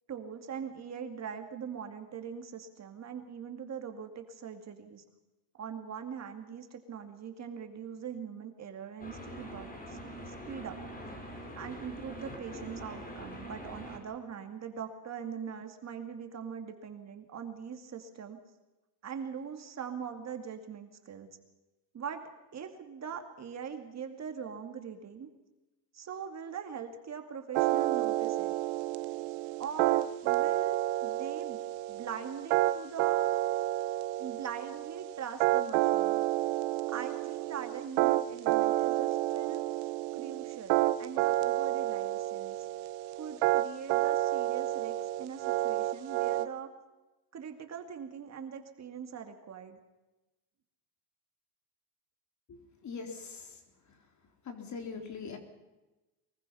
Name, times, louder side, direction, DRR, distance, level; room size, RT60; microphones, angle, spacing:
voice 1, 0.1-5.0 5.6-10.0 10.3-10.8 11.6-18.4 19.0-21.3 21.9-25.3 25.9-28.5 29.6-31.6 31.9-33.2 34.2-36.2 36.9-39.6 40.1-42.7 43.2-46.7 47.3-49.8, right 7 dB, 35° right, 6 dB, 2.5 m, -42 dB
sound 1, 9.0-14.0, equal, 20° left, 4.9 m, -44 dB
sound 2, 27.5-46.5, right 16 dB, 90° right, 1.2 m, -30 dB
voice 2, 52.5-53.6 53.9-54.0 54.4-55.4, left 5 dB, 40° left, 5 dB, 4.0 m, -42 dB
24.0 x 21.5 x 5.7 m, 1.1 s
cardioid pair, 135°, 45 cm